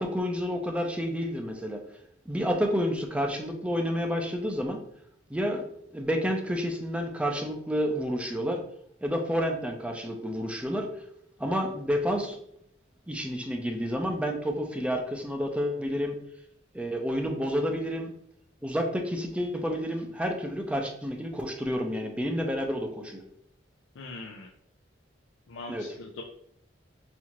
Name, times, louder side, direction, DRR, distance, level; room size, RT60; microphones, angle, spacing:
voice 1, 0.0-1.8 2.3-4.8 5.3-5.6 5.9-8.6 9.0-10.9 11.4-12.4 13.1-16.2 16.7-18.1 18.6-23.2 25.7-25.9, equal, 5° right, 3 dB, 0.5 m, -29 dB
voice 2, 24.0-24.5 25.5-26.2, left 3 dB, 80° left, 0 dB, 0.4 m, -41 dB
4.3 x 2.4 x 2.9 m, 0.70 s
head